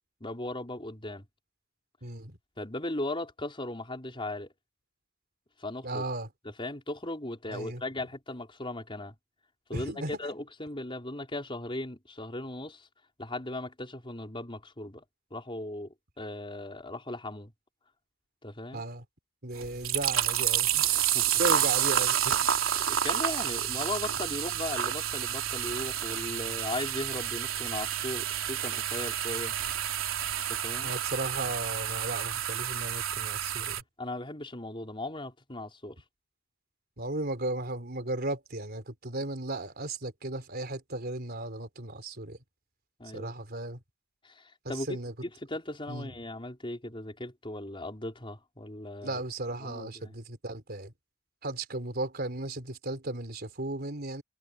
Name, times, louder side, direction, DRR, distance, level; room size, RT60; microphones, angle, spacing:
voice 1, 0.2-1.2 2.6-4.5 5.6-6.0 6.4-9.1 9.7-12.9 13.2-15.0 15.3-17.5 18.4-18.8 20.7-21.3 22.2-22.5 22.9-29.5 30.5-30.9 34.0-36.0 43.0-43.3 44.2-49.2 49.6-50.1, left 2 dB, 25° left, 4.5 m, -38 dB
voice 2, 2.0-2.4 5.8-6.3 7.5-7.8 9.7-10.2 18.7-19.0 19.4-20.7 21.4-22.4 30.8-33.8 37.0-42.4 43.1-43.8 44.9-45.1 45.9-46.1 49.0-50.9 51.4-54.2, right 2 dB, 50° right, 3.9 m, -35 dB
sound 1, 19.5-33.8, right 10 dB, 90° right, 3.3 m, -29 dB
head